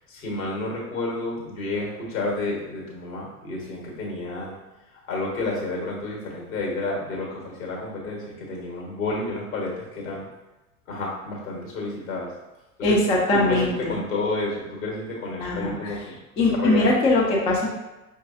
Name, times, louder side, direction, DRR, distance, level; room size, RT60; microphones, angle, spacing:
voice 1, 0.0-4.5 5.1-10.2 10.9-12.3 12.8-13.0 13.3-16.2 16.5-16.9, left 2 dB, 60° left, -1 dB, 1.3 m, -30 dB
voice 2, 12.8-14.0 15.4-15.9 16.4-17.7, left 2 dB, 15° left, -3 dB, 0.3 m, -21 dB
5.2 x 2.5 x 2.5 m, 1.1 s
figure-of-eight pair, 80°, 44 cm